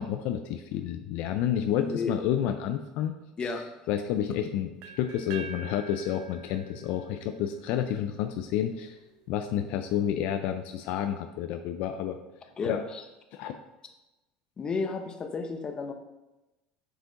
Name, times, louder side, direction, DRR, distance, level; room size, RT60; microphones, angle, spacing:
voice 1, 0.0-3.1 3.4-3.6 3.9-9.0 9.3-12.2 12.6-12.8 13.3-13.5, left 10 dB, 70° left, 7 dB, 0.4 m, -30 dB
voice 2, 1.7-2.1 3.4-3.7 12.6-13.0 14.6-15.9, left 4 dB, 30° left, 6 dB, 0.9 m, -32 dB
sound 1, 4.8-8.7, right 5 dB, 70° right, 0.6 m, -46 dB
6.4 x 4.9 x 4.0 m, 1.0 s
supercardioid pair, 100°, 3 cm